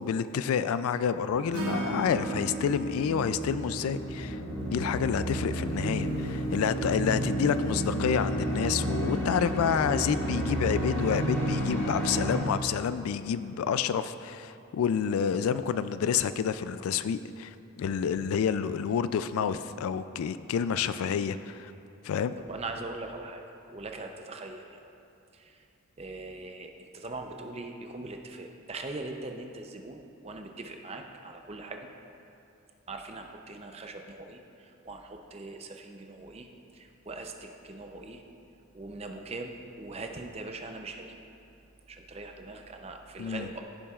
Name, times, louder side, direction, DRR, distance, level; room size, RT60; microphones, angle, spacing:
voice 1, 0.0-4.4 4.7-21.7 22.0-22.3 43.2-43.5, left 7 dB, 80° left, 14 dB, 0.3 m, -29 dB
sound 1, 1.3-12.4, right 1 dB, 50° left, 1.9 m, -32 dB
Acoustic guitar / Strum, 1.5-4.8, right 3 dB, 80° right, 1.1 m, -37 dB
voice 2, 22.5-23.4 23.7-24.8 25.3-25.6 26.0-31.9 32.9-36.5 36.7-38.2 38.7-41.2 41.9-43.6, right 2 dB, 30° right, 4 dB, 0.5 m, -41 dB
15.0 x 7.1 x 2.4 m, 2.7 s
head